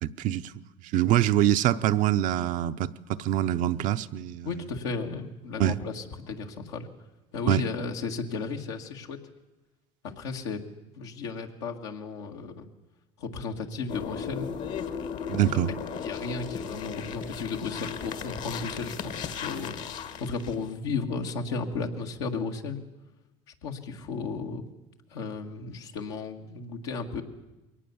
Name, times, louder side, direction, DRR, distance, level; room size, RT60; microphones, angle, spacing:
voice 1, 0.0-0.5 0.9-2.9 3.2-4.5 5.6-5.8 7.5-7.6 15.3-15.7, right 12 dB, 65° right, 0.8 m, -24 dB
voice 2, 4.4-6.9 7.3-9.2 10.0-10.6 11.0-12.7 13.2-14.5 15.4-15.5 16.0-19.8 20.2-22.8 23.6-24.7 25.1-27.2, left 4 dB, 90° left, 2.0 m, -34 dB
sound 1, 13.9-20.7, left 7 dB, 65° left, 1.7 m, -36 dB
22.0 x 18.0 x 7.1 m
supercardioid pair, 75°, 14 cm